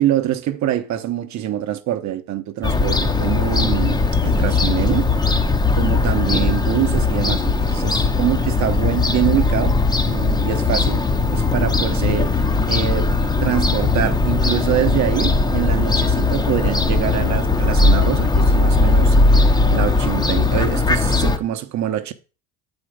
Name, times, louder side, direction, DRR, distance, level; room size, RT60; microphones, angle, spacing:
voice 1, 0.0-9.7 10.1-11.0 11.3-22.1, right 12 dB, 45° right, 0.9 m, -24 dB
Fowl / Gull seagull, 2.6-21.4, left 3 dB, 10° left, 0.7 m, -18 dB
7.7 x 4.4 x 5.0 m
hypercardioid pair, 80°, 41 cm